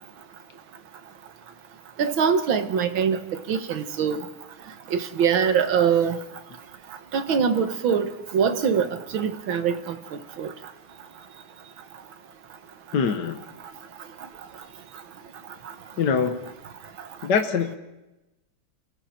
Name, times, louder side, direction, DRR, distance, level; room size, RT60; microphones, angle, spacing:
voice 1, 2.0-3.2 3.5-4.2 4.9-6.2 7.1-8.9 9.1-10.0 10.4-10.5, right 7 dB, 65° right, 9 dB, 2.0 m, -23 dB
voice 2, 12.9-13.4 16.0-16.4 17.2-17.7, left 6 dB, 55° left, 6 dB, 1.7 m, -23 dB
29.5 x 22.0 x 4.4 m, 0.99 s
omnidirectional pair, 2.4 m